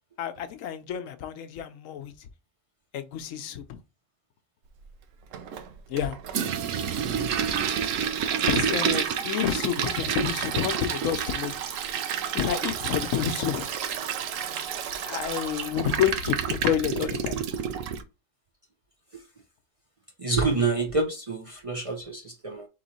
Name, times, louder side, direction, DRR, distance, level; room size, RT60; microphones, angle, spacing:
voice 1, 0.2-2.1 2.9-3.8 5.9-6.2 8.5-11.6 12.3-13.7 15.0-16.4 16.6-17.4, left 9 dB, 90° left, 1.0 m, -29 dB
Toilet flush, 5.3-18.0, right 8 dB, 80° right, 1.0 m, -29 dB
voice 2, 20.2-22.7, right 3 dB, 40° right, 0.5 m, -27 dB
3.8 x 3.1 x 4.1 m
omnidirectional pair, 1.3 m